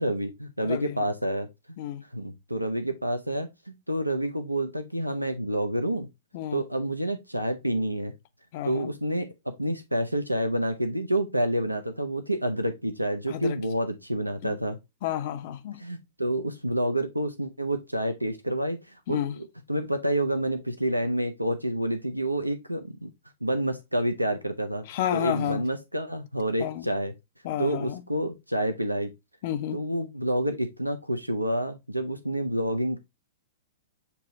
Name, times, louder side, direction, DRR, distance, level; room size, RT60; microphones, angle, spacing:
voice 1, 0.0-1.8 2.1-6.1 6.5-8.1 8.6-9.3 9.6-14.8 15.8-19.3 19.7-23.1 23.4-24.8 25.1-27.1 27.6-29.1 29.7-33.0, right 1 dB, 90° right, 0.5 m, -28 dB
voice 2, 0.6-1.1 1.8-2.0 6.3-6.6 8.5-8.9 13.3-13.6 14.4-14.5 15.0-15.8 19.1-19.4 24.8-25.7 26.6-26.9 27.4-28.0 29.4-29.9, left 12 dB, 45° left, 0.5 m, -31 dB
6.9 x 2.8 x 2.5 m
figure-of-eight pair, 105°, 0 cm